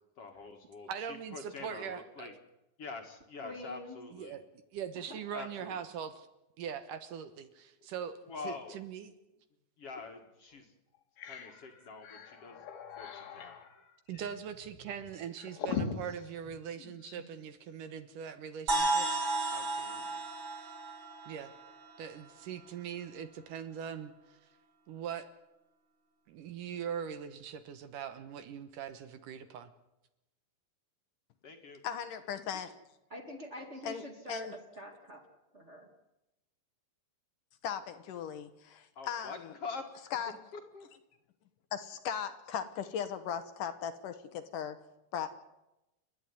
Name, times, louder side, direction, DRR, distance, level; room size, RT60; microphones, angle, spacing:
voice 1, 0.2-0.9 1.3-2.3 2.8-4.3 5.3-5.8 8.3-8.8 9.8-10.7 11.3-12.6 13.0-13.5 19.5-20.2 31.4-31.8 39.0-40.0 40.7-40.9, left 4 dB, 45° left, 5 dB, 2.5 m, -45 dB
voice 2, 0.9-2.3 4.1-4.4 4.7-6.3 6.6-8.2 8.4-9.1 14.1-19.1 21.3-21.5 22.0-24.4 24.9-25.3 26.3-29.7, right 8 dB, 70° right, 10 dB, 2.6 m, -41 dB
voice 3, 3.4-4.1 5.1-5.2 33.1-34.5 34.8-35.2 35.5-35.9, left 1 dB, 20° right, 3 dB, 2.6 m, -45 dB
sound 1, 9.9-10.1 10.5-10.6 10.9-17.3, left 6 dB, 85° left, 4.0 m, -42 dB
sound 2, 18.7-22.4, right 2 dB, 35° right, 3.1 m, -33 dB
voice 4, 31.8-32.7 33.8-34.0 34.3-34.5 37.6-39.5 40.1-40.3 41.7-44.8 45.1-45.3, left 8 dB, 70° left, 10 dB, 2.5 m, -38 dB
29.5 x 11.0 x 9.7 m, 0.93 s
omnidirectional pair, 4.2 m